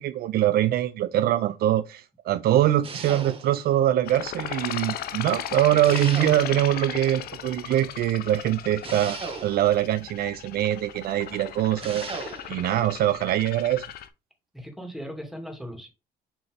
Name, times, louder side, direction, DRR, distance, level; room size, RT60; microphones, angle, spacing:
voice 1, 0.0-12.1 12.5-13.8, right 12 dB, 65° right, 0.6 m, -23 dB
sound 1, 2.8-3.7 5.8-6.8 8.8-9.9 11.8-12.6, right 4 dB, 35° right, 1.5 m, -37 dB
sound 2, 4.1-14.1, left 10 dB, 65° left, 0.8 m, -37 dB
voice 2, 14.5-15.9, equal, ahead, 2.4 m, -38 dB
7.3 x 3.9 x 3.5 m
cardioid pair, 110°, 17 cm